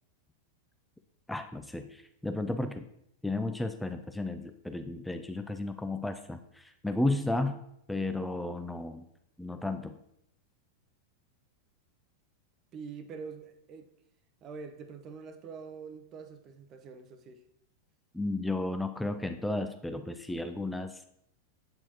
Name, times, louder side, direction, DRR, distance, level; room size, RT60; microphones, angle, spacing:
voice 1, 1.3-2.9 3.2-7.6 7.9-9.0 9.4-10.0 18.1-21.0, left 2 dB, 5° left, 7 dB, 0.3 m, -33 dB
voice 2, 12.7-13.9 14.4-17.4, right 5 dB, 40° right, 7 dB, 0.6 m, -45 dB
7.9 x 4.3 x 3.0 m, 0.77 s
hypercardioid pair, 100°, 0 cm